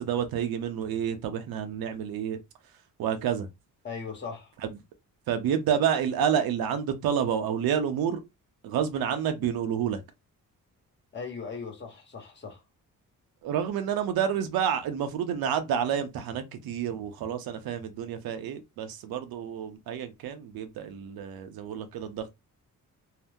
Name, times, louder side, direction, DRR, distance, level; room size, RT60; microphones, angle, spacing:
voice 1, 0.0-2.4 3.0-3.5 5.3-8.2 8.6-10.0 13.4-22.3, right 8 dB, 85° right, 0.7 m, -29 dB
voice 2, 3.8-4.5 11.1-12.6, left 5 dB, 30° left, 1.1 m, -38 dB
2.8 x 2.1 x 3.5 m
cardioid pair, 120°, 35 cm